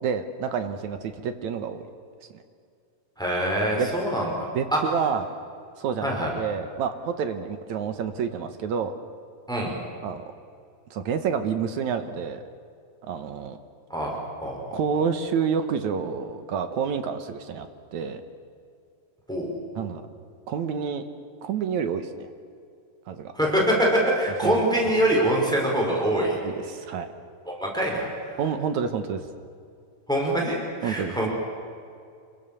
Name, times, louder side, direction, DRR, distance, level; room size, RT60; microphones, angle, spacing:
voice 1, 0.0-1.8 2.3-2.4 3.8-3.9 4.5-5.2 5.8-8.9 10.0-10.2 10.9-12.4 13.0-13.6 14.7-18.2 19.8-20.0 20.5-21.0 21.4-22.3 23.1-23.3 24.4-24.6 26.4-27.1 28.4-29.2 30.8-31.2, right 6 dB, 65° right, 8 dB, 2.2 m, -28 dB
voice 2, 3.2-4.8 6.0-6.3 9.5-9.7 13.9-14.1 14.4-14.8 19.3-19.5 23.3-26.4 27.5-28.4 30.1-31.3, right 1 dB, ahead, -2 dB, 5.0 m, -24 dB
27.0 x 22.5 x 7.0 m, 2.3 s
omnidirectional pair, 4.0 m